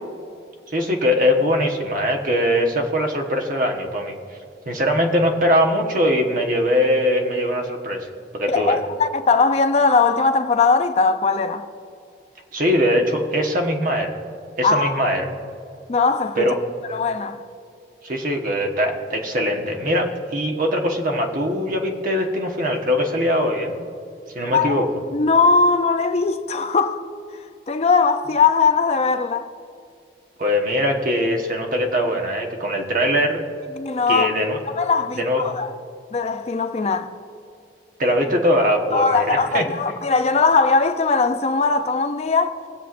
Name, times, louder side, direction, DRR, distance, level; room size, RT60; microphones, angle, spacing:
voice 1, 0.7-4.1 4.7-8.1 8.3-8.8 12.5-14.1 14.6-15.3 16.4-16.5 18.0-23.7 24.3-24.8 30.4-33.4 34.1-34.6 35.1-35.4 38.0-39.6, equal, 50° right, 1.3 m, -21 dB
voice 2, 8.5-11.7 14.6-15.1 15.9-16.5 16.9-17.4 24.5-24.9 25.1-27.1 27.7-29.5 33.8-34.4 34.7-35.7 36.1-37.1 38.9-42.5, left 4 dB, 35° left, 0.5 m, -20 dB
21.0 x 7.8 x 2.6 m
head